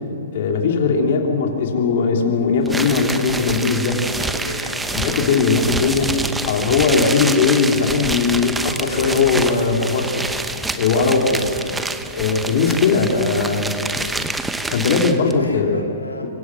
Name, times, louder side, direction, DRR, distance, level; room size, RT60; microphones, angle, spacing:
voice 1, 0.3-4.1 4.9-6.2 6.4-10.2 10.7-11.4 12.1-13.7 14.7-15.8 16.2-16.3, left 5 dB, 50° left, 1 dB, 3.4 m, -19 dB
sound 1, 2.6-15.3, right 2 dB, 5° right, 1.0 m, -27 dB
voice 2, 4.1-5.0 6.8-7.0 11.4-11.8 15.3-16.3, left 1 dB, 90° left, 1 dB, 2.6 m, -36 dB
25.0 x 25.0 x 6.3 m, 2.8 s
figure-of-eight pair, 120°, 0 cm